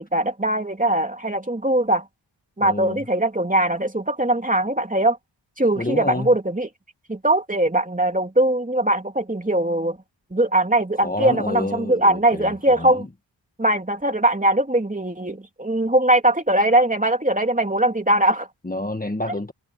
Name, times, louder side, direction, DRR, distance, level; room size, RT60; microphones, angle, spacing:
voice 1, 0.0-2.1 2.6-5.2 5.6-6.7 7.1-10.0 10.3-13.1 13.6-18.5, right 1 dB, 15° right, 2.8 m, -21 dB
voice 2, 2.6-3.0 5.8-6.3 11.0-13.1 18.6-19.5, left 2 dB, 20° left, 1.7 m, -29 dB
wide cardioid pair, 70°, 46 cm